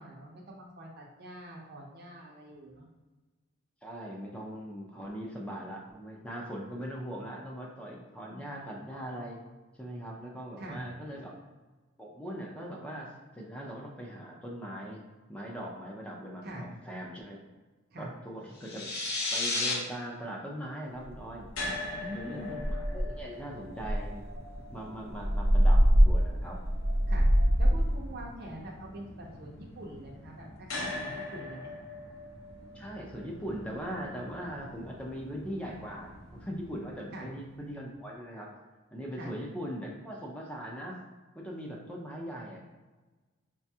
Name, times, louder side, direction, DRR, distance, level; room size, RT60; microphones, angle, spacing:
voice 1, 0.0-2.9 10.6-10.8 16.4-16.7 17.9-18.1 21.9-22.6 27.1-27.3 27.6-31.7 37.1-37.3 39.2-39.3, right 1 dB, 50° right, -2 dB, 0.6 m, -44 dB
voice 2, 3.8-9.4 9.8-11.3 12.0-15.0 15.3-17.4 18.0-18.9 19.3-21.5 22.1-24.2 24.7-25.8 26.0-26.6 32.7-38.5 38.9-41.0 41.3-42.6, equal, 5° left, -2 dB, 0.4 m, -40 dB
sound 1, 18.6-19.7, left 2 dB, 55° left, 0.6 m, -31 dB
sound 2, 21.1-21.2 21.6-21.9 22.2-22.3 22.6-23.3 23.8-28.0, equal, 80° right, 0.7 m, -24 dB
sound 3, 21.5-37.7, left 2 dB, 90° left, 0.7 m, -44 dB
4.9 x 2.3 x 2.7 m, 1.2 s
head